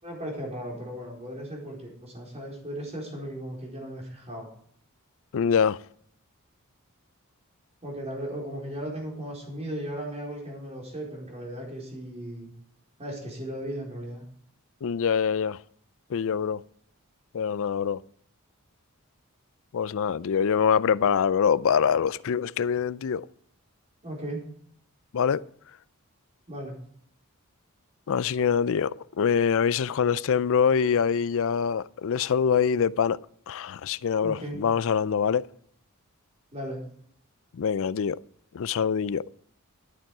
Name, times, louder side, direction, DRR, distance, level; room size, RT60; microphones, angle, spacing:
voice 1, 0.0-4.5 7.8-12.5 13.0-14.2 24.0-24.5 26.5-26.7 34.2-34.7 36.5-36.8, right 1 dB, 30° right, 4.3 m, -36 dB
voice 2, 5.3-5.8 14.8-15.6 16.1-16.6 17.3-18.0 19.7-23.2 25.1-25.4 28.1-33.2 33.5-35.5 37.5-38.2 38.5-39.2, left 7 dB, 65° left, 0.4 m, -24 dB
12.0 x 9.0 x 4.8 m
head